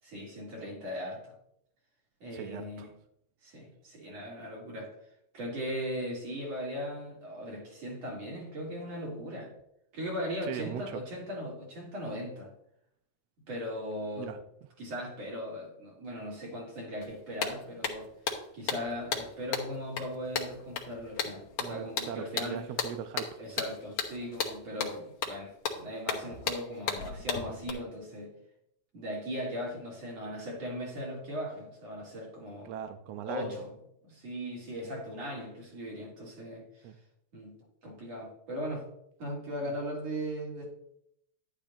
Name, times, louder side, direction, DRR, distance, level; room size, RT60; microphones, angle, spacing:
voice 1, 0.0-1.3 2.2-2.9 3.4-4.9 5.3-9.5 9.9-12.5 13.5-14.3 14.8-18.1 18.5-22.6 23.4-28.3 28.9-32.7 33.2-33.7 34.0-36.9 37.3-37.6 37.8-38.9 39.2-40.7, equal, 60° right, -3 dB, 4.0 m, -38 dB
voice 2, 2.3-2.9 10.5-11.0 14.2-14.4 21.6-23.3 32.6-33.6 34.8-34.9 36.8-36.9 39.6-39.7, right 9 dB, 75° right, 7 dB, 1.5 m, -39 dB
sound 1, 17.0-17.1 17.4-27.7, left 6 dB, 60° left, 1.9 m, -35 dB
11.0 x 10.0 x 2.7 m, 0.74 s
omnidirectional pair, 3.4 m